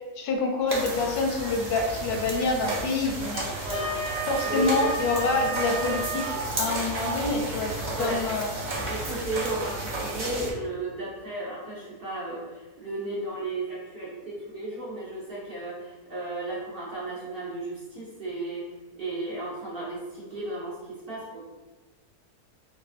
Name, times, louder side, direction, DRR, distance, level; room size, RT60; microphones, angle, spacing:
voice 1, 0.2-3.4 4.3-8.5, left 3 dB, 85° left, 1 dB, 1.2 m, -27 dB
sound 1, 0.7-10.5, right 2 dB, 70° right, 0.4 m, -33 dB
Wind instrument woodwind instrument, 3.3-6.4, right 3 dB, 70° left, 0.7 m, -32 dB
voice 2, 3.6-4.0 4.4-4.8 7.9-8.3 8.9-18.6 18.9-21.4, right 2 dB, 50° right, -7 dB, 0.8 m, -34 dB
4.9 x 2.3 x 2.4 m, 1.2 s
omnidirectional pair, 1.6 m